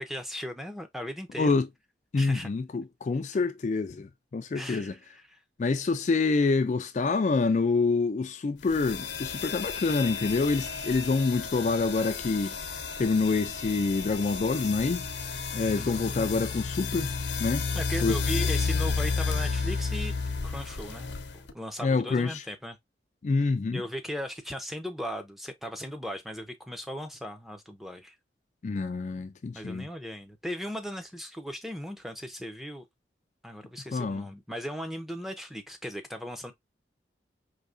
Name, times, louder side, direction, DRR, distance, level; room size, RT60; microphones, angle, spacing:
voice 1, 0.0-1.5 2.2-2.5 4.5-5.4 15.8-16.8 17.7-20.1 20.4-22.8 23.7-28.1 29.5-32.8 33.4-36.5, equal, ahead, 0.6 m, -37 dB
voice 2, 1.4-1.7 2.1-4.9 5.6-12.6 13.0-15.0 15.5-17.1 17.4-17.7 18.0-18.2 21.8-22.4 23.2-23.8 28.6-29.9 33.9-34.3, left 4 dB, 40° left, 0.3 m, -27 dB
sound 1, 8.7-21.5, left 4 dB, 85° left, 0.7 m, -32 dB
4.7 x 2.8 x 2.5 m
head